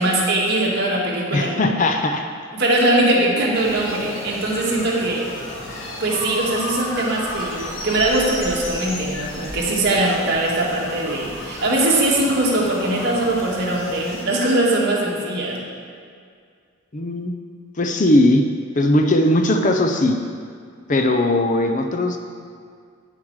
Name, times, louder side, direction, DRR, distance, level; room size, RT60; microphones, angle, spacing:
voice 1, 0.0-1.5 2.5-5.3 6.0-15.6, right 1 dB, 50° right, -4 dB, 1.8 m, -21 dB
voice 2, 1.3-2.3 16.9-17.3 17.8-18.4 18.8-20.2 20.9-22.2, left 1 dB, 40° left, 4 dB, 0.6 m, -18 dB
sound 1, 3.5-14.2, left 1 dB, 70° left, 1.8 m, -33 dB
9.3 x 7.3 x 4.8 m, 2.1 s
head